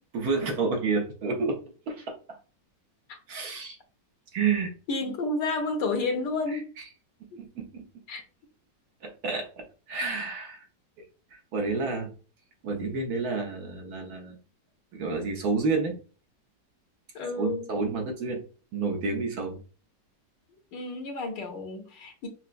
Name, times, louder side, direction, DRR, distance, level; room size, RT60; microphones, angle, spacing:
voice 1, 0.1-2.4 3.3-3.8 4.3-4.7 6.5-6.9 7.4-7.9 9.0-10.7 11.3-12.1 12.6-14.4 14.9-16.0 17.4-18.4 18.7-19.6, right 4 dB, 65° right, 1.1 m, -30 dB
voice 2, 4.9-6.7 7.3-7.4 8.1-8.2 17.1-17.6 20.7-22.3, left 3 dB, 75° left, 1.4 m, -31 dB
5.6 x 2.1 x 2.5 m
omnidirectional pair, 2.0 m